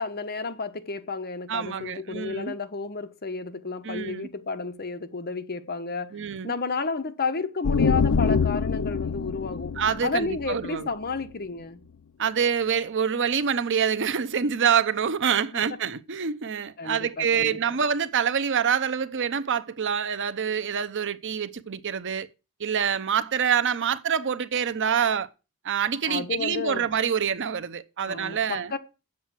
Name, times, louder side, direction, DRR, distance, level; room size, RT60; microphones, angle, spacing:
voice 1, 0.0-6.2 6.4-9.7 10.0-11.8 15.5-15.6 16.8-17.6 26.0-26.9 28.1-28.8, left 4 dB, 45° left, 1.1 m, -32 dB
voice 2, 1.5-2.5 3.8-4.3 6.1-6.5 9.8-10.9 12.2-22.3 22.6-25.3 25.6-28.7, right 7 dB, 55° right, 0.7 m, -26 dB
sound 1, 7.6-11.3, left 5 dB, 75° left, 0.5 m, -25 dB
8.5 x 7.6 x 7.3 m
head